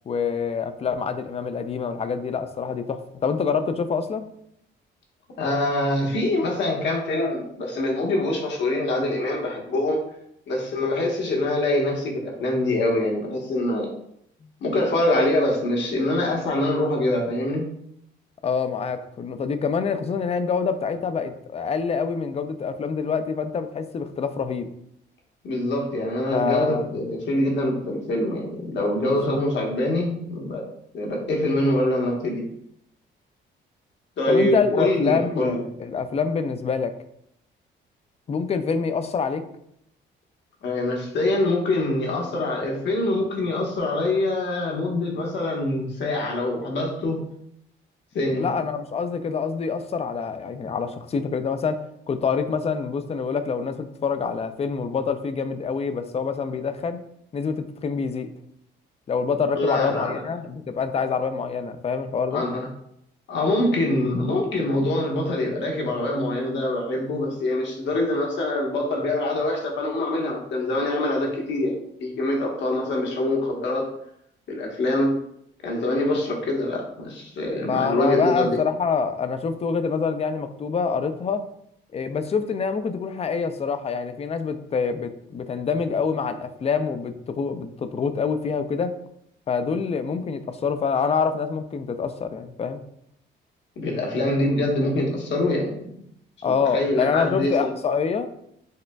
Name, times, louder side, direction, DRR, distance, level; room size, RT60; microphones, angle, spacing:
voice 1, 0.1-4.2 18.4-24.7 26.3-27.2 29.0-29.4 34.3-36.9 38.3-39.4 48.3-51.8 52.1-57.0 57.3-58.3 59.1-62.4 77.6-81.4 81.9-88.9 89.5-92.8 96.4-98.3, left 5 dB, 30° left, 9 dB, 0.4 m, -26 dB
voice 2, 5.4-10.0 10.5-13.9 14.6-17.7 25.4-30.6 30.9-32.4 34.2-35.6 40.6-47.2 48.1-48.5 59.5-60.2 62.3-62.7 63.3-73.9 74.5-75.1 75.6-78.6 93.8-95.9 96.4-97.7, left 1 dB, 65° left, -1 dB, 1.1 m, -24 dB
6.3 x 2.2 x 2.2 m, 0.73 s
cardioid pair, 90°, 20 cm